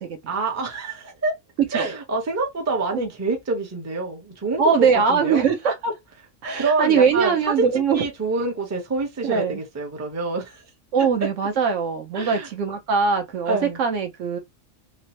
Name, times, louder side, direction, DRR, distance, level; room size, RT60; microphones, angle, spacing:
voice 1, 0.3-1.3 1.7-5.4 6.6-7.7 7.9-10.6 12.1-12.5 13.5-13.8, right 3 dB, 20° right, 0.5 m, -26 dB
voice 2, 4.6-6.0 6.4-8.0 9.2-9.6 10.9-14.4, right 6 dB, 70° right, 1.0 m, -21 dB
2.9 x 2.0 x 2.7 m
omnidirectional pair, 1.4 m